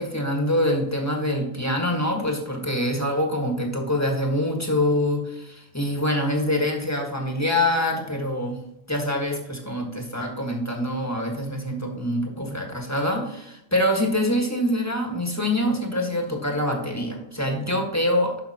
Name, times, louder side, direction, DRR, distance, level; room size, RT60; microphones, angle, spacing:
voice 1, 0.0-8.6 8.9-18.4, left 1 dB, 10° left, 1 dB, 1.4 m, -25 dB
11.5 x 5.6 x 2.8 m, 0.84 s
omnidirectional pair, 1.5 m